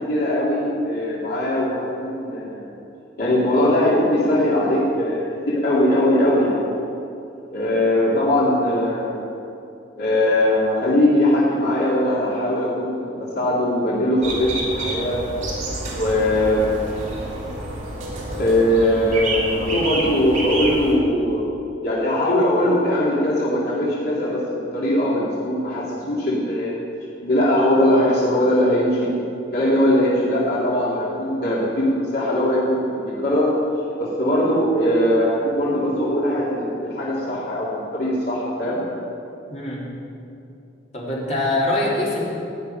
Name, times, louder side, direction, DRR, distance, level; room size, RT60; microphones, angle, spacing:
voice 1, 0.1-2.7 3.2-6.6 7.5-9.2 9.9-15.2 15.8-16.7 18.4-21.6 21.8-26.7 27.2-29.1 29.5-33.5 34.0-38.8, left 1 dB, 60° left, -7 dB, 3.0 m, -20 dB
sound 1, 14.2-20.9, right 1 dB, 45° right, 3.5 m, -28 dB
voice 2, 39.5-39.8 40.9-42.2, left 2 dB, 40° left, -6 dB, 3.7 m, -23 dB
16.0 x 6.9 x 9.3 m, 2.7 s
head